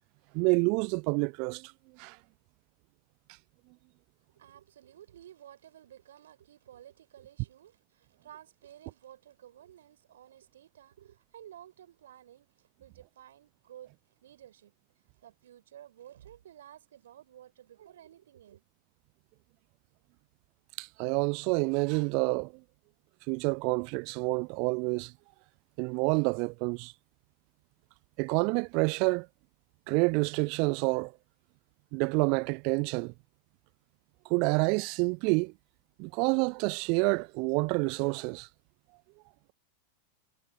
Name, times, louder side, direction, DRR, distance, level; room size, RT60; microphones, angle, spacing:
voice 1, 0.3-1.7 2.0-2.2 20.8-22.5 23.3-25.1 25.8-26.9 28.2-29.3 29.9-31.1 31.9-33.1 34.3-35.5 36.0-38.5, right 34 dB, 45° right, 0.4 m, -28 dB
voice 2, 4.3-13.9 14.2-14.7 15.2-18.6, right 11 dB, 60° right, 5.1 m, -53 dB
figure-of-eight pair, 90°, 0 cm